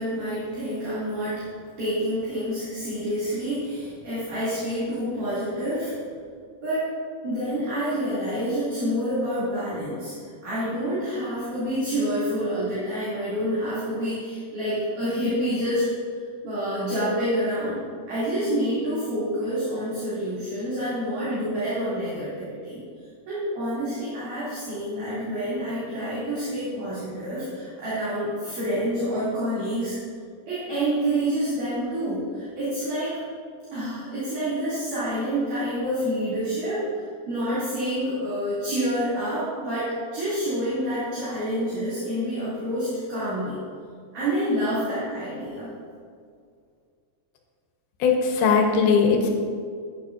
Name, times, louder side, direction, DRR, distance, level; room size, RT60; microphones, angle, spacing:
voice 1, 0.0-1.5 1.8-6.0 6.6-6.9 7.2-10.1 10.4-15.9 16.4-17.8 18.1-22.8 23.3-29.9 30.5-33.2 33.7-36.9 37.3-43.6 44.1-45.7, equal, 55° right, -13 dB, 4.3 m, -28 dB
voice 2, 48.0-49.3, left 5 dB, 75° left, 2 dB, 2.9 m, -19 dB
13.5 x 9.6 x 2.7 m, 2.1 s
omnidirectional pair, 4.5 m